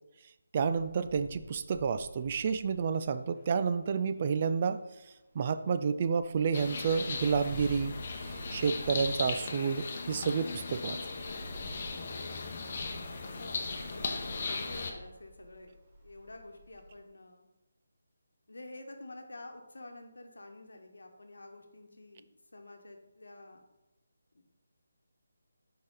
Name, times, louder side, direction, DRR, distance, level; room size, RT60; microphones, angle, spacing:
voice 1, 0.5-4.8 5.3-8.0 8.2-11.0, right 6 dB, 35° right, 11 dB, 0.3 m, -30 dB
sound 1, 0.7-5.6 5.9-17.0, right 1 dB, 55° right, 2.3 m, -50 dB
sound 2, 6.5-14.9, left 4 dB, 40° left, 0.9 m, -38 dB
voice 2, 13.2-17.5 18.5-22.3 22.5-23.6 24.3-24.4, left 2 dB, 80° left, 4 dB, 1.1 m, -49 dB
6.3 x 4.8 x 3.7 m, 1.0 s
figure-of-eight pair, 160°, 0 cm